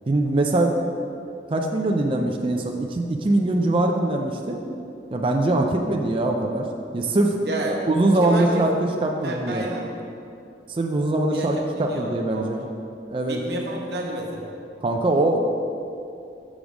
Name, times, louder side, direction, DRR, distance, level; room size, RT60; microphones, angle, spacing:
voice 1, 0.1-0.8 1.5-4.6 5.1-6.7 6.9-7.4 7.9-8.7 9.0-9.6 10.7-12.7 13.1-13.4 14.8-15.4, right 2 dB, 30° right, 2 dB, 0.4 m, -22 dB
voice 2, 7.4-7.9 8.1-8.6 9.2-9.9 11.3-11.5 11.9-12.6 13.3-14.5, right 1 dB, 65° right, -1 dB, 1.0 m, -30 dB
6.2 x 5.3 x 5.0 m, 2.6 s
head